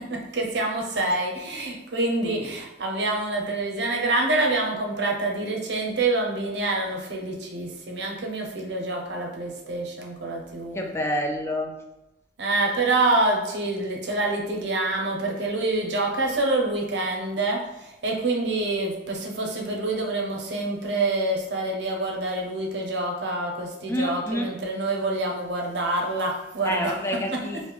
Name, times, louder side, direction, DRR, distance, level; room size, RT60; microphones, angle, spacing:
voice 1, 0.1-10.8 12.4-17.6 18.0-26.9, right 2 dB, 70° right, 0 dB, 0.7 m, -26 dB
voice 2, 10.7-11.7 23.9-24.5 26.6-27.6, equal, 15° left, 2 dB, 0.3 m, -28 dB
3.2 x 2.6 x 3.4 m, 0.94 s
head